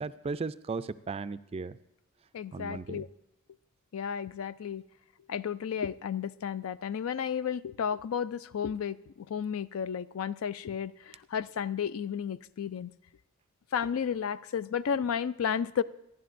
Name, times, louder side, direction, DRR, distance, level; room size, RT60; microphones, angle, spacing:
voice 1, 0.0-1.8 2.5-3.0, right 4 dB, 30° right, 13 dB, 0.3 m, -36 dB
voice 2, 2.3-3.1 3.9-4.8 5.3-12.9 13.7-15.8, left 7 dB, 70° left, 16 dB, 0.4 m, -33 dB
25.5 x 10.5 x 2.6 m, 0.82 s
head